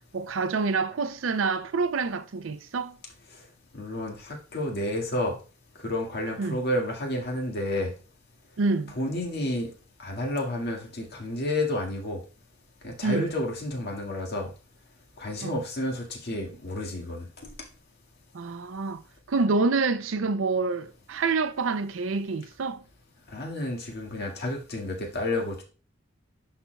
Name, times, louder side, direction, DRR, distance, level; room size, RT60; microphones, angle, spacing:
voice 1, 0.1-3.0 6.4-6.6 8.6-9.0 13.0-13.3 15.4-15.6 18.3-19.0 19.3-22.8, right 4 dB, 70° right, 0.5 m, -27 dB
voice 2, 3.7-5.4 5.8-7.9 9.0-9.7 10.0-12.2 12.8-14.5 15.2-17.3 23.3-25.6, left 1 dB, 55° left, 1.8 m, -30 dB
11.0 x 4.3 x 2.3 m
head